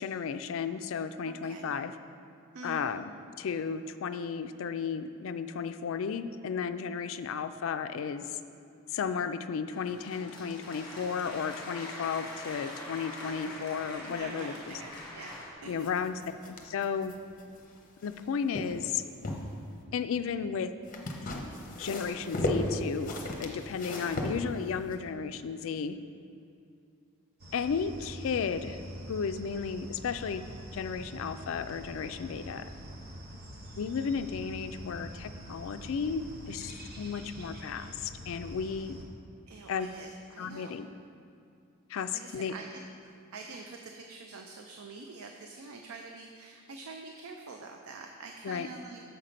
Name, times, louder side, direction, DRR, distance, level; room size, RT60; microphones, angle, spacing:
voice 1, 0.0-1.9 2.6-3.1 3.4-8.4 8.9-14.8 15.6-16.2 16.6-17.1 18.0-19.0 19.9-20.7 21.8-26.0 27.5-28.8 29.1-30.5 30.7-32.7 33.8-39.0 39.7-39.9 40.4-40.9 41.9-42.5 48.4-48.7, left 6 dB, 65° left, 10 dB, 0.3 m, -34 dB
voice 2, 1.3-1.7 2.5-2.9 14.0-15.9 39.5-40.7 42.1-49.0, right 3 dB, 75° right, 3 dB, 0.5 m, -46 dB
sound 1, 9.7-15.5, left 1 dB, 20° left, 1.4 m, -43 dB
sound 2, 15.8-18.2 18.5-19.5 20.9-24.9, left 1 dB, 40° left, 0.7 m, -35 dB
sound 3, 27.4-39.1, equal, 45° right, 0.9 m, -45 dB
6.8 x 5.8 x 5.1 m, 2.5 s
head